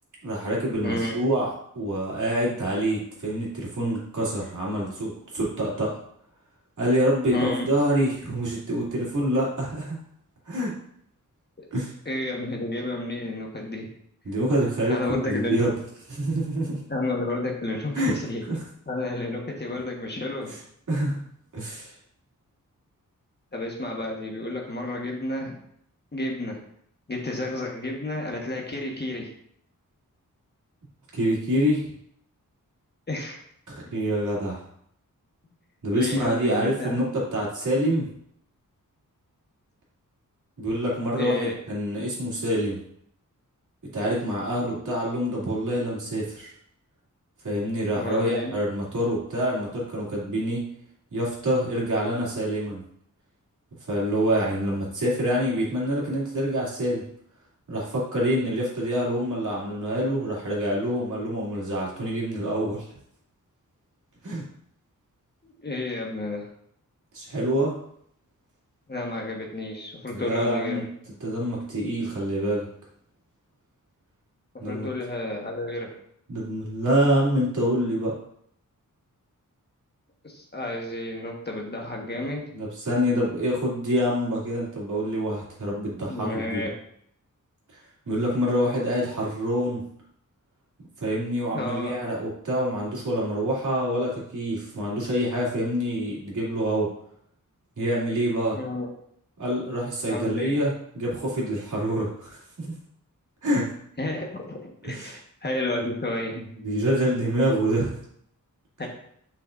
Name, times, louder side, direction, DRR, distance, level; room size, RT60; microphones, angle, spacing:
voice 1, 0.2-1.5 1.7-5.9 6.8-10.0 10.5-10.7 11.7-11.9 14.2-15.8 16.1-16.8 17.9-18.2 18.5-18.6 20.5-20.6 20.9-21.2 21.5-21.9 31.1-31.8 33.7-34.6 35.8-38.1 40.6-42.8 43.9-46.5 47.4-50.6 51.1-52.8 53.9-57.0 57.7-62.9 64.2-64.4 67.1-67.8 70.1-70.8 71.2-72.7 74.6-74.9 76.3-78.1 82.5-86.7 88.1-89.8 91.0-96.9 97.8-98.6 99.4-102.7 103.4-103.7 104.8-105.2 106.6-108.0, equal, 65° right, -6 dB, 2.8 m, -26 dB
voice 2, 0.8-1.2 7.3-7.7 12.0-13.9 14.9-15.6 16.9-18.4 18.9-20.5 23.5-25.6 26.1-26.6 27.1-29.3 33.1-33.4 33.8-33.9 35.9-37.0 41.2-41.6 44.8-44.9 47.9-48.5 65.4-66.5 68.9-70.8 74.7-76.0 80.2-82.5 86.1-86.7 91.5-91.9 98.5-98.9 100.1-100.6 104.0-106.4 108.8-108.9, left 2 dB, 30° left, 0 dB, 1.4 m, -31 dB
7.8 x 5.9 x 2.6 m, 0.69 s
wide cardioid pair, 100°, 33 cm